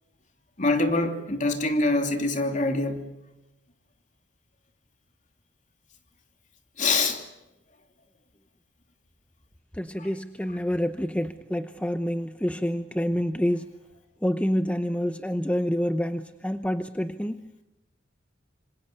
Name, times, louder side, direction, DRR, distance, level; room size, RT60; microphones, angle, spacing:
voice 1, 0.6-3.0 6.8-7.2 10.0-10.1, left 2 dB, 40° left, 2.9 m, -24 dB
voice 2, 9.8-13.6 14.2-17.5, equal, 5° left, 0.8 m, -27 dB
26.5 x 26.0 x 6.8 m
head